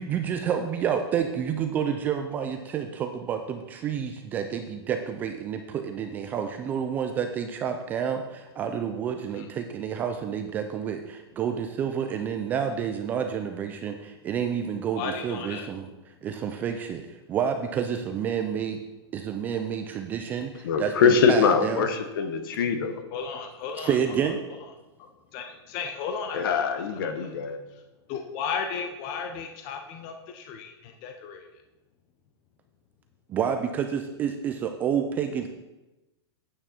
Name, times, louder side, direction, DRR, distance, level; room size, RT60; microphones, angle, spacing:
voice 1, 0.0-15.9 16.2-17.0 17.3-18.8 19.1-21.9 23.8-24.4 33.3-35.5, right 8 dB, 10° right, 6 dB, 0.3 m, -29 dB
voice 2, 15.0-15.7 23.1-24.7 25.0-27.3 27.7-27.8 28.1-31.5, left 6 dB, 25° left, 5 dB, 0.7 m, -35 dB
voice 3, 20.6-23.0 26.3-27.6, left 6 dB, 50° left, 7 dB, 1.3 m, -23 dB
8.9 x 8.6 x 4.4 m, 1.0 s
hypercardioid pair, 165°, 14 cm